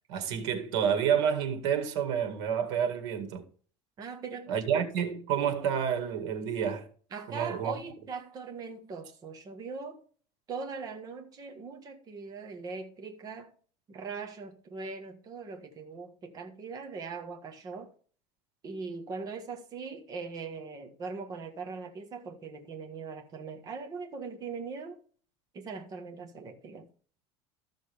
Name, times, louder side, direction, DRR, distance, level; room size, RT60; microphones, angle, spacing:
voice 1, 0.1-3.4 4.5-6.9 7.3-7.7, right 8 dB, 90° right, 2.0 m, -29 dB
voice 2, 4.0-4.8 7.1-10.0 10.5-13.5 13.9-17.9 18.6-25.0 25.5-26.9, right 4 dB, 25° right, 1.4 m, -40 dB
14.0 x 6.3 x 3.5 m
cardioid pair, 165°, 14 cm